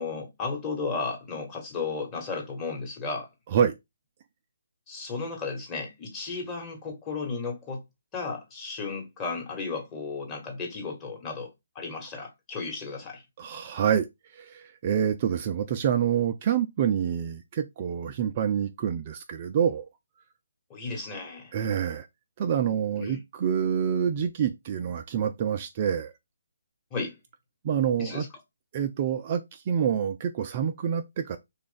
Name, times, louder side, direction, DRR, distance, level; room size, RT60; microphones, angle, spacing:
voice 1, 0.0-3.3 4.9-7.8 8.1-13.2 20.7-21.5 23.0-23.2 26.9-27.2 28.0-28.3, left 4 dB, 20° left, 1.2 m, -34 dB
voice 2, 13.4-14.1 14.3-19.8 21.5-22.1 22.4-26.1 27.6-28.3 28.7-31.4, right 8 dB, 35° right, 0.3 m, -27 dB
3.2 x 2.4 x 3.8 m
figure-of-eight pair, 145°, 0 cm